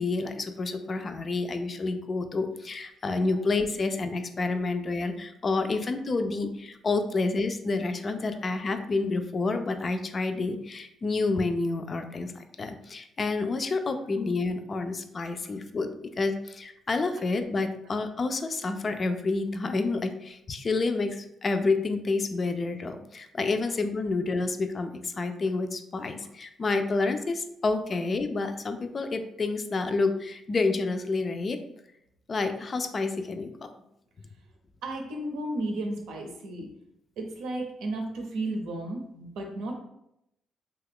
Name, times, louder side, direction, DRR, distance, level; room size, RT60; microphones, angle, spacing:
voice 1, 0.0-15.9 16.2-31.6 32.3-33.7, left 3 dB, 40° left, 7 dB, 0.4 m, -29 dB
voice 2, 34.8-36.7 37.2-39.7, right 2 dB, 80° right, 2 dB, 0.6 m, -33 dB
2.9 x 2.3 x 3.5 m, 0.81 s
supercardioid pair, 70°, 0 cm